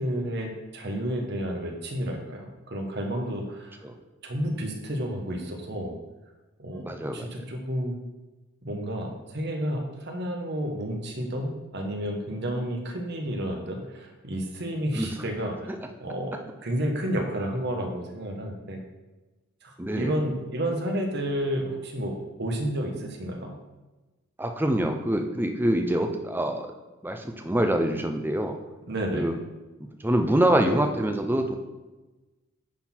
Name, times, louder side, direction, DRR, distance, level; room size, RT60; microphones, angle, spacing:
voice 1, 0.0-3.8 4.2-5.9 6.6-8.0 8.6-15.7 16.0-18.8 19.6-23.6 28.9-29.3, equal, 50° right, 2 dB, 1.2 m, -31 dB
voice 2, 6.8-7.3 14.9-15.1 15.7-15.8 19.8-20.2 24.4-26.7 27.0-28.6 29.1-29.3 30.0-31.5, right 1 dB, 10° right, 5 dB, 0.5 m, -25 dB
9.9 x 4.1 x 4.4 m, 1.1 s
head